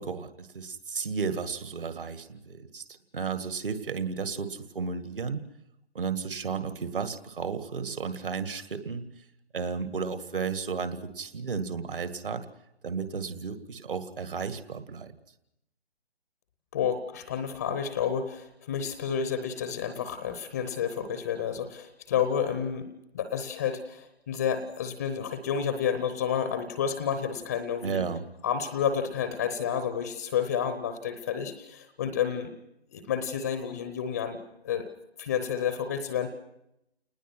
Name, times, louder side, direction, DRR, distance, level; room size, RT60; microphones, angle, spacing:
voice 1, 0.0-2.8 3.1-5.4 5.9-9.0 9.5-12.5 12.8-15.1 27.8-28.3, right 5 dB, 55° right, 10 dB, 2.1 m, -33 dB
voice 2, 16.7-28.0 28.4-32.5 32.9-34.4 34.6-34.9 35.2-36.3, left 8 dB, 15° left, 10 dB, 0.7 m, -30 dB
29.5 x 20.0 x 6.1 m, 0.83 s
figure-of-eight pair, 145°, 32 cm